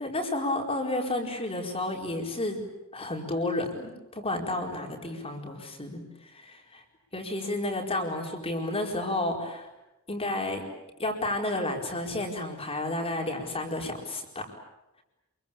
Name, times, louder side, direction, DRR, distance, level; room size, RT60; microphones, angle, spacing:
voice 1, 0.0-2.6 2.9-6.8 7.1-9.7 10.1-10.6 11.0-14.5, left 2 dB, 25° left, 2 dB, 4.7 m, -31 dB
28.5 x 23.5 x 8.8 m, 0.94 s
head